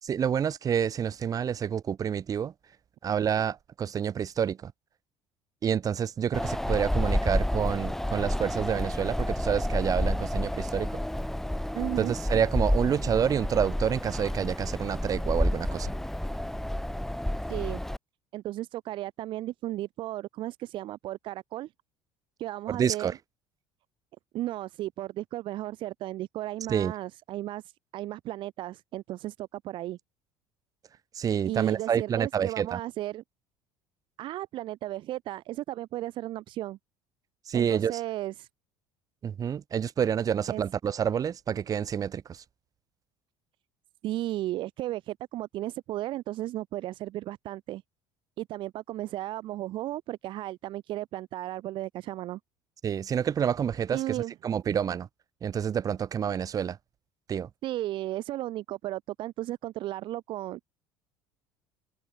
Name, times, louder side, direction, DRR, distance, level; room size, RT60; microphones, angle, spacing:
voice 1, 0.0-2.5 3.0-4.7 5.6-11.0 12.0-15.9 22.7-23.1 26.7-26.9 31.1-32.8 37.5-38.0 39.2-42.4 52.8-55.1 55.4-56.8 57.3-57.5, right 8 dB, 40° right, 7.6 m, -28 dB
Wind, 6.3-18.0, left 1 dB, 5° left, 4.9 m, -30 dB
voice 2, 11.7-12.1 17.5-17.8 18.3-21.7 22.4-23.1 24.3-27.6 27.9-30.0 31.4-33.2 34.2-36.8 37.5-38.5 40.5-40.6 44.0-47.8 48.4-52.4 53.9-54.3 57.6-60.7, right 15 dB, 60° right, 6.0 m, -34 dB
supercardioid pair, 105°, 9 cm